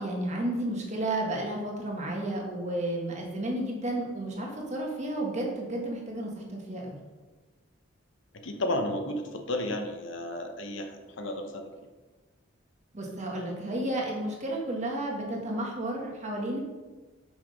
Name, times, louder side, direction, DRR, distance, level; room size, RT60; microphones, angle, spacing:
voice 1, 0.0-7.0 12.9-16.6, right 1 dB, 35° right, -1 dB, 1.5 m, -32 dB
voice 2, 8.4-11.7, left 1 dB, 70° left, 5 dB, 0.9 m, -32 dB
6.1 x 5.9 x 5.1 m, 1.3 s
head